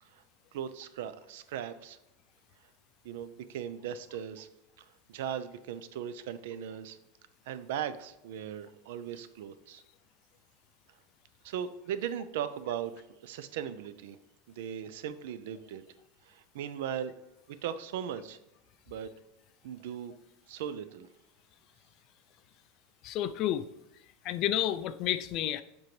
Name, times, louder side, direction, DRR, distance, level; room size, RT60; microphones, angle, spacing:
voice 1, 0.5-2.0 3.0-4.5 4.8-7.0 7.5-9.8 11.4-14.2 14.5-15.8 16.3-17.1 17.6-18.4 18.9-19.1 19.6-20.1 20.5-21.1, right 9 dB, 75° right, 12 dB, 0.5 m, -38 dB
voice 2, 23.0-23.6 24.2-25.6, left 12 dB, 45° left, 13 dB, 0.4 m, -30 dB
7.4 x 4.5 x 3.2 m, 0.92 s
supercardioid pair, 150°, 0 cm